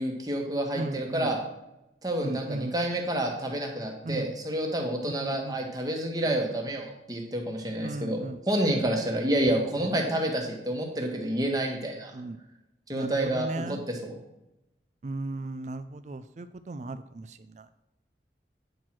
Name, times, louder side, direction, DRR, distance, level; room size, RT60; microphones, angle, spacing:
voice 1, 0.0-1.4 2.0-12.1 12.9-14.1, right 1 dB, 20° right, 1 dB, 1.4 m, -29 dB
voice 2, 0.7-1.3 2.2-2.8 4.0-4.4 5.0-5.7 6.3-6.4 7.8-8.4 9.5-9.9 12.1-12.4 12.9-13.8 15.0-17.8, right 2 dB, 40° right, 10 dB, 0.4 m, -37 dB
9.3 x 4.5 x 6.1 m, 0.91 s
head